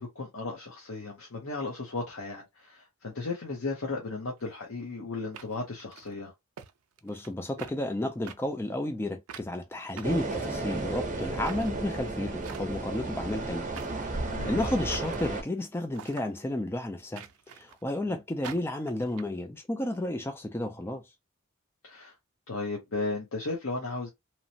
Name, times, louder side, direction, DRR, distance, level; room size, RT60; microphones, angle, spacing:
voice 1, 0.0-6.3 14.3-14.8 18.0-18.1 21.8-22.1 22.5-24.1, left 3 dB, 70° left, 0.8 m, -35 dB
sound 1, 4.4-4.5 5.3-6.1 6.6-6.7 7.0-7.3 7.6-7.8 8.3-8.4 9.3-9.5 10.0-10.8 11.4-11.7 12.4-12.9 13.7-14.1 14.9-15.3 15.9-16.3 17.2-17.8 18.4-19.2, right 7 dB, 85° right, 0.4 m, -45 dB
voice 2, 7.0-13.7 14.2-17.2 17.5-21.0, left 1 dB, 10° left, 0.3 m, -32 dB
sound 2, 10.0-15.4, right 2 dB, 35° right, 0.7 m, -33 dB
3.0 x 2.0 x 2.6 m
head